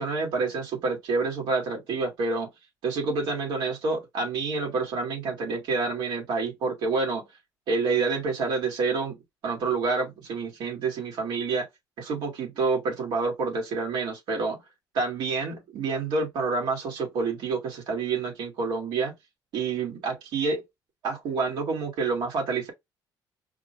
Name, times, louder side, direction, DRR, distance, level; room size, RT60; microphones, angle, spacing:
voice 1, 0.0-2.5 2.8-7.2 7.7-9.2 9.4-11.7 12.0-14.6 14.9-19.1 19.5-20.6 21.0-22.7, right 4 dB, 80° right, 2.0 m, -28 dB
4.9 x 2.2 x 3.1 m
cardioid pair, 145°, 8 cm